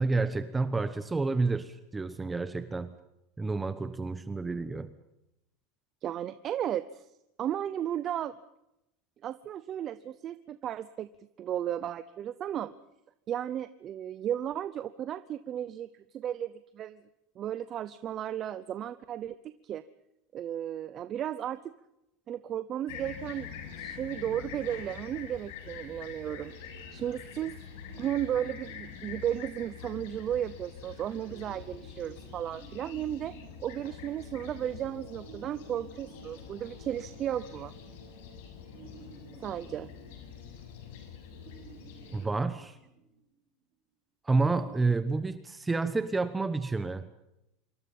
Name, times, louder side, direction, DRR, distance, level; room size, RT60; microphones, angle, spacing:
voice 1, 0.0-2.9 3.4-4.9 42.1-42.8 44.2-47.1, right 3 dB, 10° right, 11 dB, 1.1 m, -29 dB
voice 2, 6.0-7.1 7.4-8.3 9.2-11.1 11.4-12.7 13.3-17.0 17.4-19.8 20.3-21.7 22.3-23.5 23.8-26.5 26.9-27.5 28.0-33.3 33.6-37.7 39.4-39.9, right 10 dB, 30° right, 13 dB, 0.8 m, -34 dB
Fixed-wing aircraft airplane, 22.9-42.3, left 7 dB, 70° left, 7.2 m, -45 dB
sound 1, 26.2-29.9 31.2-34.5 35.2-37.3 38.7-40.8 41.3-43.4 44.3-44.9, right 6 dB, 65° right, 5.6 m, -54 dB
26.5 x 23.5 x 5.6 m, 0.86 s
supercardioid pair, 160°, 0 cm